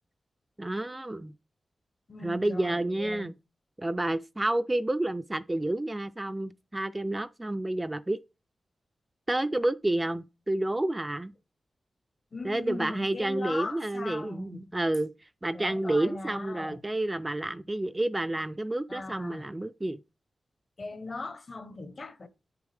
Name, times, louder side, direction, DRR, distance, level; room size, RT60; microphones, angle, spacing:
voice 1, 0.6-1.3 2.2-3.3 3.8-8.2 9.3-11.3 12.4-15.1 15.4-20.0, right 1 dB, 15° right, 0.3 m, -30 dB
voice 2, 2.1-3.3 12.3-14.6 15.5-16.8 18.9-19.5 20.8-22.3, left 3 dB, 40° left, 0.8 m, -39 dB
8.7 x 7.0 x 3.3 m
wide cardioid pair, 140°, 0 cm